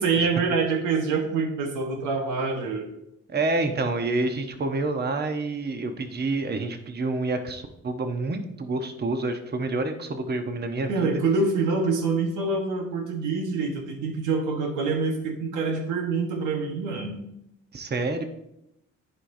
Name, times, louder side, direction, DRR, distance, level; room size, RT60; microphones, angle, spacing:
voice 1, 0.0-2.9 10.9-17.2, right 4 dB, 90° right, 4 dB, 1.3 m, -26 dB
voice 2, 3.3-11.1 17.7-18.2, right 2 dB, 35° right, 6 dB, 1.0 m, -28 dB
13.5 x 4.9 x 2.7 m, 0.82 s
cardioid pair, 90°, 30 cm